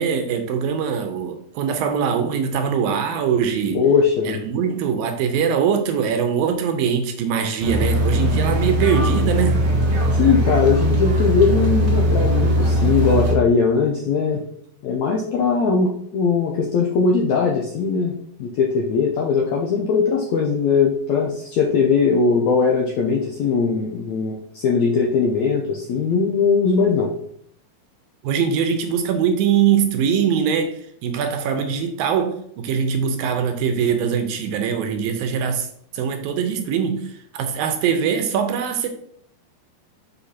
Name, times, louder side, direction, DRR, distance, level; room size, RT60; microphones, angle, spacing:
voice 1, 0.0-3.9 4.3-9.6 28.2-35.7 35.9-38.9, right 7 dB, 75° right, 6 dB, 2.4 m, -22 dB
voice 2, 3.7-4.4 10.2-14.4 14.8-27.1, left 5 dB, 75° left, 0 dB, 1.6 m, -20 dB
sound 1, 7.6-13.3, equal, 40° right, 1.1 m, -19 dB
6.6 x 5.5 x 4.3 m, 0.66 s
omnidirectional pair, 4.4 m